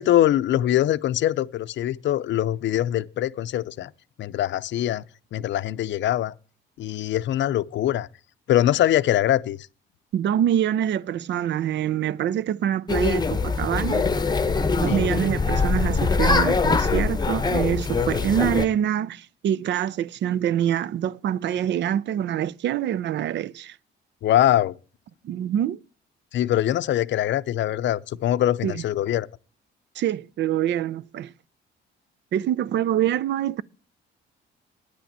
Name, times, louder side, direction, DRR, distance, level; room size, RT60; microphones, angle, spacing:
voice 1, 0.0-3.9 4.2-5.0 5.3-6.3 6.8-8.1 8.5-9.6 14.9-15.0 24.2-24.8 26.3-29.3, left 12 dB, 70° left, 0.5 m, -23 dB
voice 2, 10.1-14.1 14.8-23.8 25.2-25.8 28.6-28.8 30.0-31.3 32.3-33.6, right 10 dB, 65° right, 0.5 m, -25 dB
sound 1, 12.9-18.7, left 4 dB, 20° left, 0.8 m, -23 dB
9.9 x 5.9 x 8.6 m
cardioid pair, 90°, 20 cm